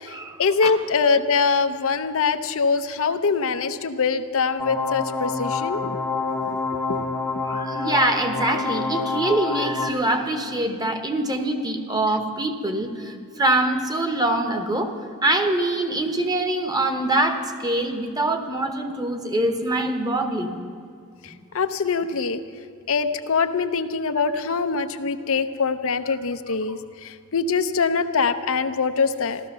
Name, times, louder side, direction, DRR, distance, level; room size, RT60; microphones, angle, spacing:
voice 1, 0.4-6.0 6.9-7.1 16.1-16.3 21.5-22.4 22.9-29.4, left 5 dB, 65° left, 8 dB, 0.7 m, -23 dB
sound 1, 4.6-9.9, left 4 dB, 10° left, 0.8 m, -27 dB
voice 2, 7.4-14.9 15.2-20.6, right 1 dB, 20° right, 6 dB, 1.2 m, -24 dB
15.0 x 13.0 x 6.8 m, 2.3 s
head